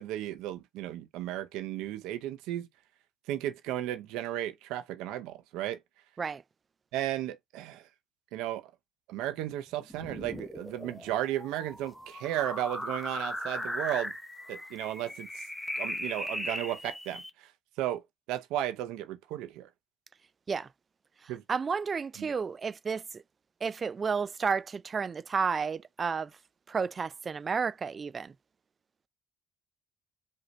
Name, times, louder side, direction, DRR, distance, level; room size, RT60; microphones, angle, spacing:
voice 1, 0.0-2.7 3.3-5.8 6.9-7.8 8.3-8.7 9.1-14.1 14.5-15.3 15.8-17.5 17.8-18.0 18.3-19.7 21.3-21.4 22.2-22.3, right 13 dB, 80° right, 0.7 m, -34 dB
sound 1, 9.9-17.3, left 1 dB, 10° left, 0.7 m, -38 dB
voice 2, 21.2-23.2 23.6-26.4 26.7-28.3, right 5 dB, 40° right, 0.4 m, -32 dB
5.3 x 2.8 x 3.1 m
hypercardioid pair, 60°, 0 cm